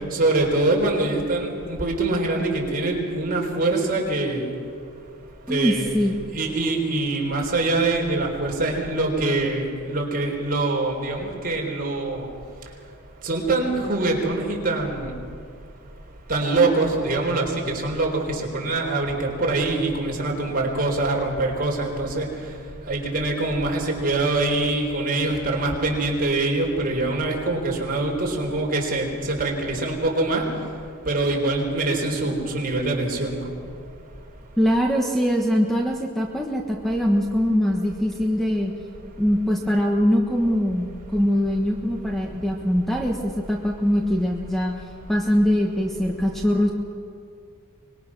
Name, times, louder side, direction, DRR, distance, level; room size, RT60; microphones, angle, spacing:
voice 1, 0.1-4.5 5.5-5.9 6.3-12.3 13.2-15.1 16.3-22.3 22.9-30.4 31.1-33.5, right 2 dB, 40° right, 0 dB, 4.2 m, -24 dB
voice 2, 5.5-6.1 34.6-38.7 39.2-44.8 45.1-46.7, equal, ahead, 0 dB, 1.4 m, -22 dB
25.0 x 21.0 x 6.2 m, 2.3 s
head